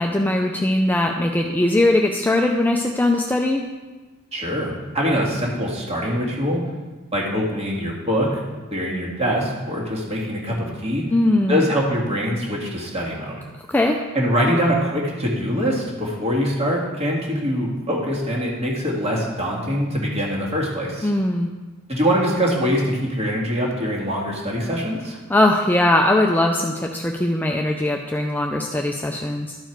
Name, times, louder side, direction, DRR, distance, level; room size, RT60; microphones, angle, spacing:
voice 1, 0.0-3.7 11.1-11.6 13.7-14.0 21.0-21.5 25.3-29.6, left 1 dB, 10° left, 2 dB, 0.4 m, -20 dB
voice 2, 4.3-6.6 7.1-8.4 8.7-11.1 11.5-13.4 14.1-21.1 21.9-25.2, equal, 30° right, -2 dB, 1.8 m, -23 dB
12.0 x 4.6 x 4.5 m, 1.2 s
head